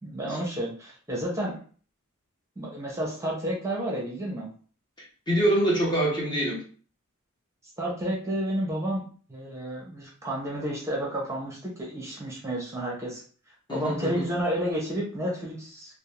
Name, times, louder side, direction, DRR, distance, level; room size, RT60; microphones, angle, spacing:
voice 1, 0.0-1.5 2.6-4.5 7.8-13.2 13.7-16.0, right 1 dB, 15° right, -3 dB, 0.7 m, -31 dB
voice 2, 5.3-6.6 13.7-14.3, right 1 dB, 20° left, -4 dB, 0.7 m, -25 dB
2.5 x 2.1 x 3.0 m, 0.42 s
head